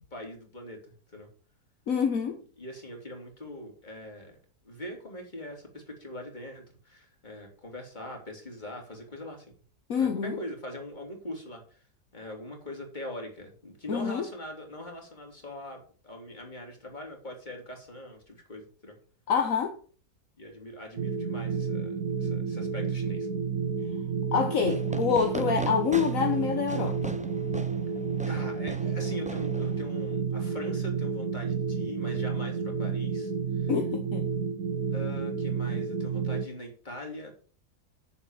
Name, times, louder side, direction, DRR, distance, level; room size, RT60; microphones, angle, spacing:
voice 1, 0.1-1.3 2.6-4.4 4.6-9.5 10.0-11.8 12.1-18.9 20.4-23.3 28.3-33.3 33.6-33.7 34.9-37.3, left 1 dB, 30° left, 3.2 m, -42 dB
voice 2, 1.9-2.4 9.9-10.4 13.9-14.3 19.3-19.7 24.3-27.2 33.7-34.3, left 6 dB, 60° left, 1.5 m, -27 dB
sound 1, 21.0-36.5, right 6 dB, 60° right, 1.2 m, -31 dB
Fireworks, 24.6-30.2, right 1 dB, 10° right, 0.5 m, -41 dB
8.7 x 7.0 x 7.2 m
omnidirectional pair, 1.7 m